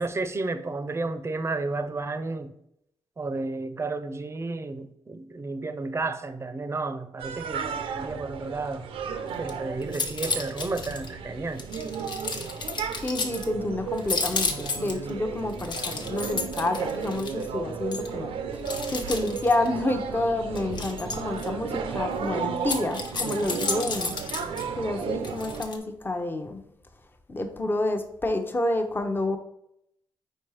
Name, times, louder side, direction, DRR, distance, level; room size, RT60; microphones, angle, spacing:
voice 1, 0.0-2.6 3.2-8.9 9.4-11.7, right 3 dB, 30° right, 11 dB, 0.6 m, -32 dB
sound 1, 7.2-25.6, right 6 dB, 90° right, 0.6 m, -34 dB
sound 2, 9.3-9.5 9.8-11.1 11.6-13.5 14.0-15.1 15.5-17.4 17.9-18.1 18.6-19.7 20.5-21.5 22.6-24.6 25.2-25.8, left 4 dB, 55° left, 0.9 m, -32 dB
voice 2, 13.0-18.4 18.9-24.2 24.8-26.6 27.3-29.4, left 2 dB, 20° left, 6 dB, 0.7 m, -29 dB
4.6 x 4.3 x 4.8 m, 0.77 s
cardioid pair, 75°, 9 cm